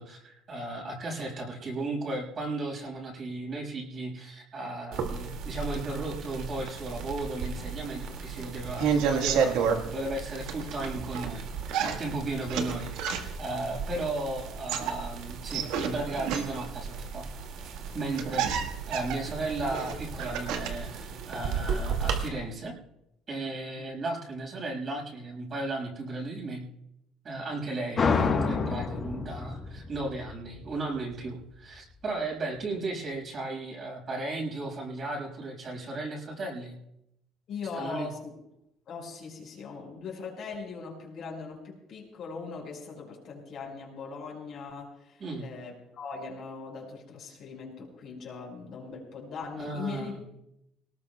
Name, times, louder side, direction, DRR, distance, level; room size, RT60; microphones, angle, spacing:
voice 1, 0.0-11.4 11.8-17.3 17.9-18.6 18.9-22.7 23.3-26.7 27.2-36.7 37.7-38.1 45.2-45.5 49.6-50.2, right 2 dB, 35° right, -1 dB, 6.3 m, -35 dB
sound 1, 4.9-22.3, right 5 dB, 70° right, 2.4 m, -37 dB
sound 2, 8.6-9.8 10.4-11.3 11.7-13.5 14.5-16.8 17.6-17.7 18.0-20.9 21.2-21.9, right 7 dB, 85° right, 1.6 m, -30 dB
sound 3, 28.0-31.3, left 5 dB, 30° left, 1.3 m, -28 dB
voice 2, 37.5-38.3 38.9-50.2, left 5 dB, 50° left, -1 dB, 5.3 m, -40 dB
24.0 x 19.5 x 2.4 m, 0.82 s
cardioid pair, 140°, 0 cm